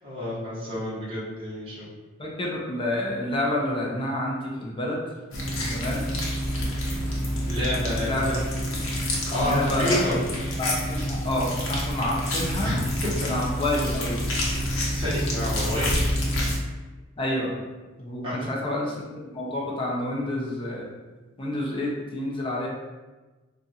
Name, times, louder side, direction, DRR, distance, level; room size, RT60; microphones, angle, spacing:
voice 1, 0.0-1.8 7.5-8.4 9.1-10.1 12.6-12.8 13.1-13.3 14.9-16.1 18.2-18.3, left 1 dB, 25° right, -9 dB, 1.1 m, -29 dB
voice 2, 2.2-5.0 5.6-6.0 7.8-8.4 9.4-10.0 10.6-12.8 13.2-14.2 17.2-17.6 18.0-20.9 21.4-22.7, left 1 dB, 25° left, -3 dB, 0.6 m, -29 dB
sound 1, 5.3-16.6, equal, 75° left, 0.8 m, -28 dB
2.5 x 2.5 x 4.1 m, 1.2 s
head